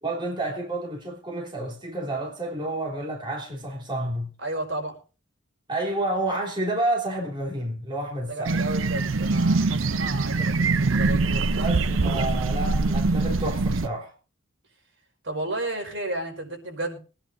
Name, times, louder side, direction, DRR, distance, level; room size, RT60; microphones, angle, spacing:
voice 1, 0.0-4.3 5.7-8.5 11.6-14.1, right 1 dB, 25° right, 3.4 m, -30 dB
voice 2, 4.4-4.9 8.2-12.4 15.2-17.0, right 1 dB, 65° right, 5.0 m, -33 dB
sound 1, 8.5-13.9, right 3 dB, 85° right, 0.7 m, -23 dB
23.0 x 10.0 x 2.6 m
head